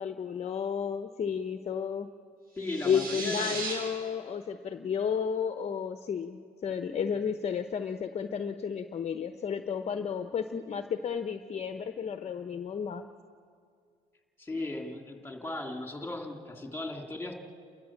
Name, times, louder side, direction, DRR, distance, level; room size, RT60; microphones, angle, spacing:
voice 1, 0.0-2.1 2.8-13.1, left 7 dB, 40° left, 8 dB, 1.0 m, -32 dB
voice 2, 2.6-3.6 14.4-17.3, left 2 dB, 10° left, 2 dB, 2.9 m, -37 dB
sound 1, 2.6-3.7, right 3 dB, 60° right, 7.8 m, -36 dB
29.5 x 14.0 x 7.4 m, 2.2 s
cardioid pair, 110°, 17 cm